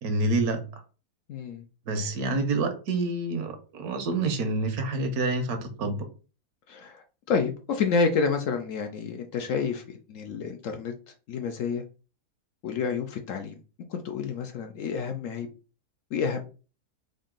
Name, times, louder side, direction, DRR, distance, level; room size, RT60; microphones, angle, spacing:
voice 1, 0.0-0.6 1.9-6.1, right 2 dB, 75° right, 7 dB, 1.2 m, -27 dB
voice 2, 1.3-1.6 2.0-2.1 6.7-10.9 11.3-11.8 12.6-13.6 13.9-15.5 16.1-16.4, left 5 dB, 65° left, 5 dB, 0.8 m, -29 dB
3.8 x 2.6 x 3.6 m, 0.35 s
omnidirectional pair, 1.7 m